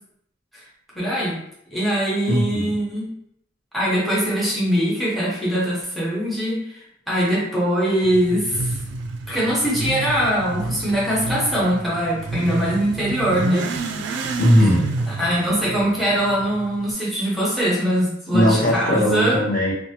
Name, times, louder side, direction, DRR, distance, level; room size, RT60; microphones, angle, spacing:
voice 1, 0.9-1.4 1.7-3.1 3.7-8.8 9.3-13.7 15.1-19.4, equal, ahead, -7 dB, 0.9 m, -22 dB
voice 2, 2.3-2.7 14.4-14.9 18.3-19.7, equal, 45° left, -5 dB, 0.8 m, -18 dB
Motorcycle / Accelerating revving vroom, 8.0-16.9, right 3 dB, 65° right, 0.3 m, -30 dB
3.0 x 2.2 x 2.8 m, 0.76 s
head